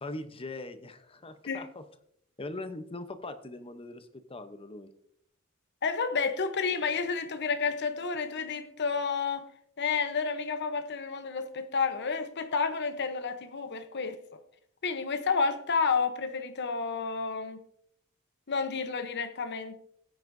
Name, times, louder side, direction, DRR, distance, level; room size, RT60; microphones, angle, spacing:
voice 1, 0.0-1.8 2.4-4.9, left 2 dB, 25° left, 0.8 m, -41 dB
voice 2, 5.8-9.5 9.8-14.2 14.8-17.6 18.5-19.8, left 5 dB, 55° left, 0.9 m, -30 dB
16.5 x 9.5 x 2.7 m
head